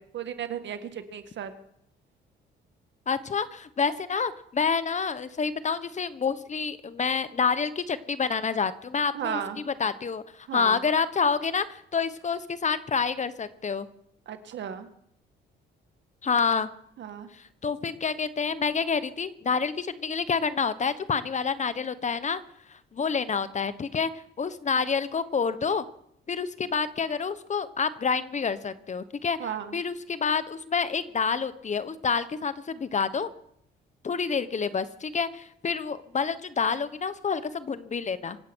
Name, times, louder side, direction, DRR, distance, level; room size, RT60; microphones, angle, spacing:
voice 1, 0.0-1.5 9.1-9.6 10.5-10.8 14.3-14.9 17.0-17.3 29.4-29.8, right 8 dB, 65° right, 8 dB, 1.9 m, -35 dB
voice 2, 3.1-9.4 9.7-10.2 10.5-13.9 16.2-16.7 17.3-22.4 22.7-25.8 26.3-29.4 29.7-33.3 34.0-38.4, left 5 dB, 35° left, 14 dB, 1.1 m, -28 dB
25.0 x 8.6 x 6.2 m, 0.73 s
cardioid pair, 90°, 20 cm